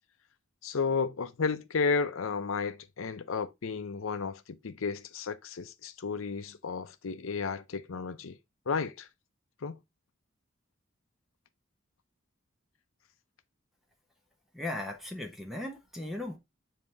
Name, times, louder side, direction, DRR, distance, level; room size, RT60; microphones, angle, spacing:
voice 1, 0.6-8.4 8.7-9.1 9.6-9.8, left 5 dB, 80° left, 0.6 m, -33 dB
voice 2, 14.5-16.4, left 1 dB, ahead, 1.0 m, -37 dB
7.4 x 2.9 x 4.6 m
head